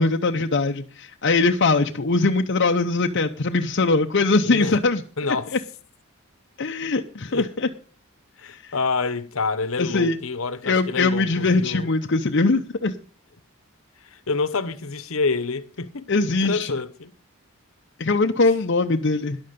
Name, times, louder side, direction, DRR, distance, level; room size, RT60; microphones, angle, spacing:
voice 1, 0.0-5.0 6.6-7.5 8.6-8.7 9.8-10.2 10.6-12.9 16.1-16.7 18.0-19.4, left 3 dB, 50° left, 0.7 m, -21 dB
voice 2, 4.4-4.8 5.2-5.6 7.3-7.5 8.4-11.9 14.0-16.1 16.4-17.1, left 4 dB, 70° left, 1.0 m, -27 dB
13.5 x 10.5 x 5.2 m
head